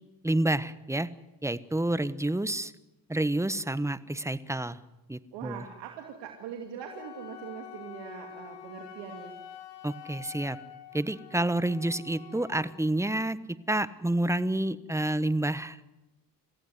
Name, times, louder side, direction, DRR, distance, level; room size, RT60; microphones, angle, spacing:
voice 1, 0.2-1.1 1.4-2.7 3.1-4.8 5.1-5.6 9.8-10.6 10.9-13.4 13.7-15.9, right 1 dB, 5° right, 15 dB, 1.2 m, -29 dB
voice 2, 5.3-9.3, right 8 dB, 90° right, 2 dB, 2.8 m, -42 dB
Wind instrument woodwind instrument, 6.7-12.8, left 9 dB, 80° left, 3.5 m, -47 dB
27.0 x 15.0 x 9.7 m, 0.97 s
supercardioid pair, 75°, 41 cm